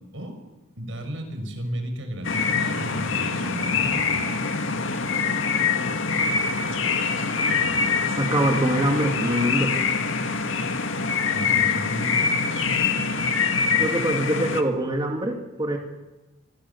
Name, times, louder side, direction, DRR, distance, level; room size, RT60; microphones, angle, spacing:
voice 1, 0.8-4.3 7.1-7.3 7.6-7.9 11.3-12.4, equal, 80° right, 5 dB, 6.0 m, -34 dB
sound 1, 2.2-14.6, left 5 dB, 90° left, 1.9 m, -24 dB
voice 2, 8.2-9.7 13.8-15.8, right 1 dB, 25° right, 2 dB, 2.3 m, -24 dB
25.5 x 21.5 x 7.1 m, 1.1 s
head